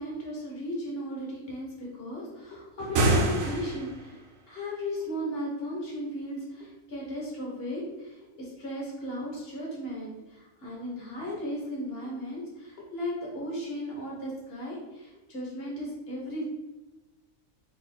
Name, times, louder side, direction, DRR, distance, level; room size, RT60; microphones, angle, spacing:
voice 1, 0.0-4.2 4.5-16.4, equal, 50° left, -4 dB, 1.3 m, -36 dB
sound 1, 2.8-4.1, right 2 dB, 85° right, 1.1 m, -26 dB
3.0 x 2.8 x 4.2 m, 1.1 s
omnidirectional pair, 1.4 m